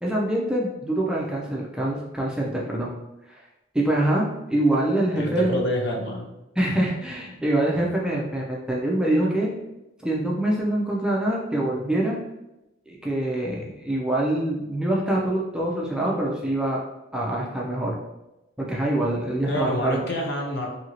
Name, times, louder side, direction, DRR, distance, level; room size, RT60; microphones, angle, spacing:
voice 1, 0.0-2.9 3.3-3.4 3.7-5.6 6.6-9.5 10.0-12.2 12.9-16.8 17.1-18.0 18.6-20.0, right 1 dB, 5° right, -3 dB, 0.3 m, -25 dB
voice 2, 5.1-6.3 19.5-20.7, equal, 60° left, 0 dB, 0.6 m, -27 dB
2.7 x 2.6 x 2.9 m, 0.95 s
head